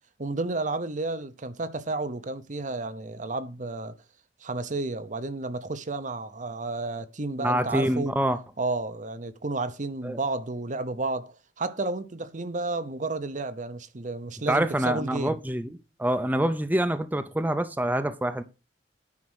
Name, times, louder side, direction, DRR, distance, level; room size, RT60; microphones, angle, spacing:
voice 1, 0.2-3.9 4.4-8.1 8.6-15.4, right 3 dB, 45° right, 0.8 m, -31 dB
voice 2, 7.4-8.4 10.0-10.2 14.5-15.7 16.0-18.4, right 1 dB, 10° right, 0.6 m, -26 dB
9.6 x 5.0 x 6.3 m
head